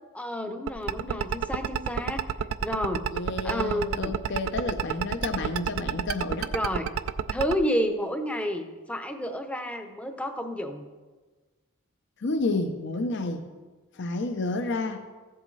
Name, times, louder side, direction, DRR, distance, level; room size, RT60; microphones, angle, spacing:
voice 1, 0.1-2.2 2.6-3.0 3.4-4.1 6.5-6.9 7.3-10.9, equal, 5° left, 6 dB, 0.7 m, -30 dB
sound 1, 0.7-7.6, right 8 dB, 70° right, 0.4 m, -28 dB
voice 2, 3.1-6.5 12.2-13.4 14.0-15.0, left 2 dB, 55° left, 6 dB, 0.6 m, -30 dB
15.0 x 7.7 x 3.2 m, 1.3 s
head